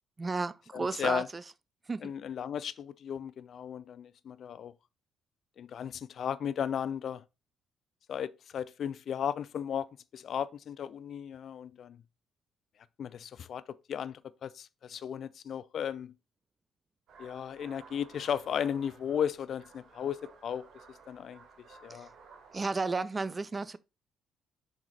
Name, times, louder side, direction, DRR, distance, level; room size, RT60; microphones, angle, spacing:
voice 1, 0.2-1.4 1.9-2.1 21.9-22.1 22.5-23.8, right 3 dB, 25° right, 0.4 m, -33 dB
voice 2, 0.7-1.3 2.0-4.7 5.6-7.2 8.1-9.9 10.1-12.0 13.0-13.6 13.9-16.1 17.2-20.6 21.1-21.4 21.8-22.1, left 8 dB, 50° left, 0.5 m, -35 dB
sound 1, 17.1-22.7, right 5 dB, 55° right, 1.4 m, -55 dB
7.3 x 4.8 x 4.0 m
figure-of-eight pair, 45°, 0 cm